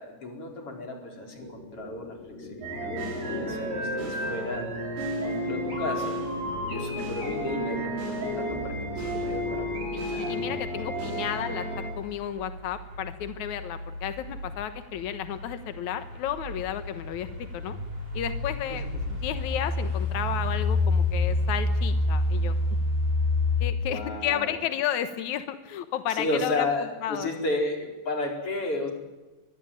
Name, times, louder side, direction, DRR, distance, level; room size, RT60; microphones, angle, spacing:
voice 1, 0.0-4.7 5.2-6.3 6.7-9.7 10.1-10.4 10.8-11.3 23.9-24.6 26.1-28.9, left 2 dB, 30° left, 2 dB, 5.1 m, -33 dB
sound 1, 1.3-11.2, left 1 dB, 60° left, 9.2 m, -41 dB
sound 2, 2.6-11.9, equal, 70° right, 8.5 m, -32 dB
sound 3, 4.6-23.7, left 2 dB, 45° right, 8.4 m, -30 dB
voice 2, 9.9-11.6 12.0-17.8 18.1-22.5 23.6-26.7 27.0-27.3, left 10 dB, 80° left, 9 dB, 1.7 m, -32 dB
24.0 x 21.0 x 8.9 m, 1.1 s
omnidirectional pair, 5.2 m